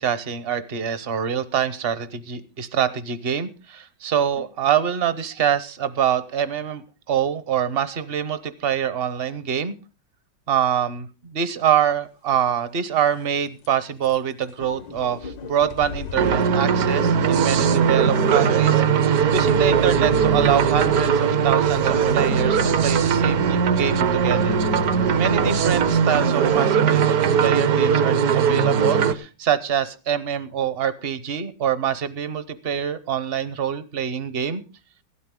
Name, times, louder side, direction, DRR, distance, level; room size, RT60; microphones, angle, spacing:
voice 1, 0.0-6.8 7.1-9.7 10.5-24.6 25.2-34.6, right 9 dB, 45° right, 14 dB, 0.8 m, -25 dB
sound 1, 12.3-12.4 12.9-13.3 13.6-13.7 14.0-14.2 14.4-26.0, left 7 dB, 90° left, 1.7 m, -35 dB
sound 2, 16.2-29.1, right 7 dB, 60° right, 1.2 m, -19 dB
16.0 x 12.5 x 3.7 m, 0.32 s
omnidirectional pair, 1.9 m